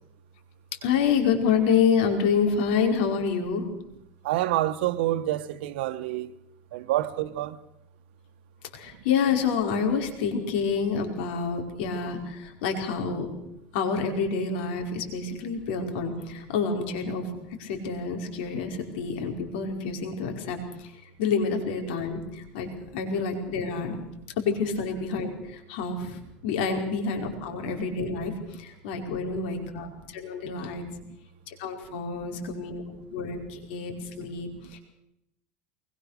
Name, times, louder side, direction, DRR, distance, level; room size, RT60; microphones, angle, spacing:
voice 1, 0.8-3.7 8.7-13.3 13.7-17.3 17.6-24.0 24.4-30.8 31.5-32.8 33.1-34.8, left 6 dB, 80° left, 5.1 m, -28 dB
voice 2, 4.2-6.4 6.7-7.6 32.3-32.4, right 14 dB, 90° right, 1.3 m, -27 dB
23.0 x 21.5 x 6.7 m
supercardioid pair, 145°, 6 cm